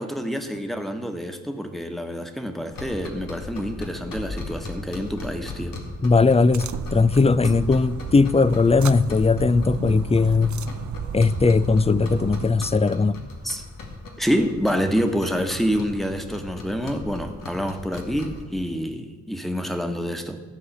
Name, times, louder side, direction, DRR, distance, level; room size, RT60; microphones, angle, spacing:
voice 1, 0.0-5.8 13.4-13.6 14.2-20.4, equal, ahead, 1.4 m, -27 dB
sound 1, 2.7-18.5, left 2 dB, 85° left, 2.0 m, -37 dB
voice 2, 6.0-10.6 11.1-13.2, left 4 dB, 20° left, 0.5 m, -19 dB
sound 2, 6.5-12.5, right 8 dB, 60° right, 0.6 m, -34 dB
14.5 x 4.8 x 8.3 m
cardioid pair, 75°, 33 cm